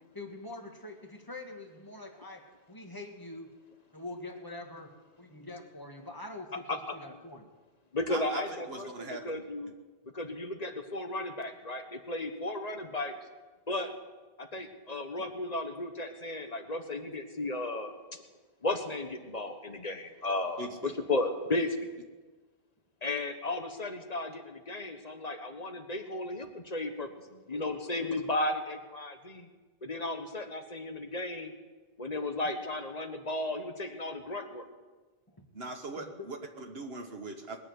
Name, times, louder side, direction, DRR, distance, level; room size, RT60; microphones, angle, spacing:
voice 1, 0.1-3.5 3.9-4.9 5.2-7.5 14.5-14.7 15.2-15.3 30.0-30.1 35.3-35.5 36.0-36.1, left 2 dB, 20° left, 3 dB, 1.8 m, -44 dB
voice 2, 6.5-6.9 7.9-9.7 10.1-13.2 13.7-13.9 14.4-17.9 18.6-21.9 23.0-29.5 29.8-31.5 32.0-34.7, left 2 dB, 40° left, 6 dB, 1.4 m, -34 dB
voice 3, 8.1-8.4 8.7-9.4 20.6-20.9 35.5-37.6, right 2 dB, 70° right, 3 dB, 1.4 m, -40 dB
20.5 x 6.9 x 9.5 m, 1.3 s
omnidirectional pair, 1.1 m